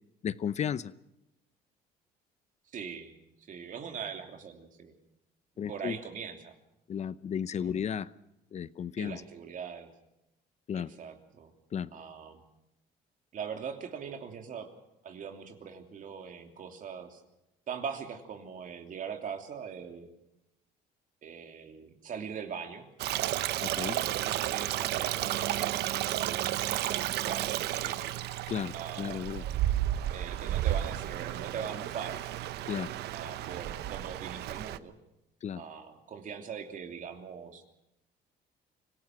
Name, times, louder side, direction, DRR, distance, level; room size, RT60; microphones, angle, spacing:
voice 1, 0.2-0.9 5.6-6.0 6.9-8.1 8.5-9.2 10.7-10.9 11.7-11.9 23.6-24.0 28.5-29.4 32.6-32.9 35.4-35.6, left 8 dB, 40° left, 17 dB, 0.7 m, -34 dB
voice 2, 2.7-3.1 3.4-4.9 5.7-6.5 7.6-7.7 9.0-9.9 10.7-11.5 11.9-12.4 13.3-14.7 15.0-17.2 17.7-20.1 21.2-22.9 23.6-28.1 28.7-29.2 30.1-32.2 33.1-34.9 35.6-37.6, right 7 dB, 50° right, 5 dB, 2.9 m, -41 dB
Stream, 23.0-34.8, right 13 dB, 75° right, 0.8 m, -32 dB
25.0 x 17.5 x 6.1 m, 0.89 s
cardioid pair, 110°, 17 cm